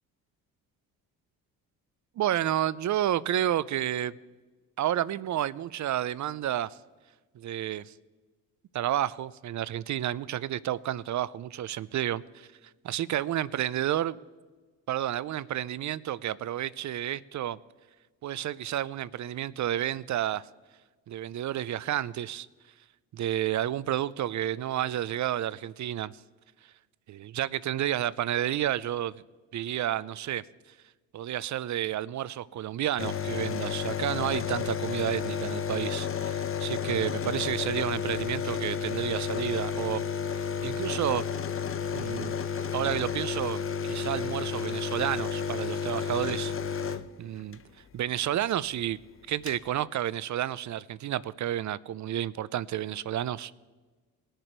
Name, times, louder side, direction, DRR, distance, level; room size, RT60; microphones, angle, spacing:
voice 1, 2.2-4.1 4.8-6.7 7.4-7.9 8.7-12.5 12.8-14.2 14.9-17.6 18.2-20.4 21.1-22.5 23.1-26.1 27.1-29.2 29.5-30.4 31.1-41.3 41.9-42.3 42.7-46.5 47.2-47.6 47.9-49.0 49.3-53.5, right 12 dB, 45° right, 0.5 m, -30 dB
sound 1, 33.0-47.6 48.9-49.0 49.2-49.6, left 7 dB, 30° left, 0.8 m, -32 dB
19.5 x 6.7 x 4.5 m
supercardioid pair, 65°, 40 cm